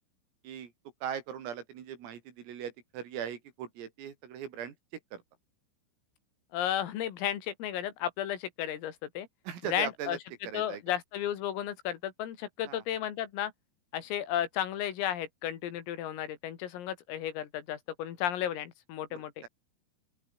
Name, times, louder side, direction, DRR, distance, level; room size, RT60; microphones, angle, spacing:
voice 1, 1.0-4.7 5.1-5.2 9.5-10.2 10.4-10.8 12.7-12.8 19.1-19.5, right 9 dB, 85° right, 6.2 m, -39 dB
voice 2, 6.5-9.3 9.7-10.2 10.5-13.5 13.9-19.4, left 11 dB, 85° left, 5.2 m, -33 dB
open air
omnidirectional pair, 5.9 m